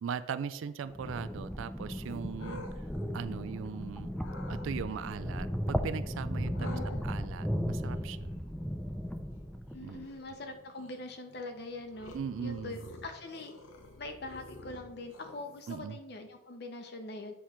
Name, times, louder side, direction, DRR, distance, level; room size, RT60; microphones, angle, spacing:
voice 1, 0.0-2.9 3.1-4.2 4.5-8.3 9.8-10.1 12.1-12.8 15.7-16.0, right 7 dB, 80° right, 13 dB, 0.3 m, -39 dB
sound 1, 0.8-10.1, equal, 5° left, 0.3 m, -36 dB
sound 2, 2.0-3.8 4.2-4.7 6.5-16.0, left 2 dB, 85° left, 0.9 m, -50 dB
voice 2, 6.6-7.0 9.7-12.1 12.4-13.5 14.0-17.3, left 2 dB, 55° left, 5 dB, 0.6 m, -43 dB
8.4 x 3.1 x 5.6 m, 0.95 s
head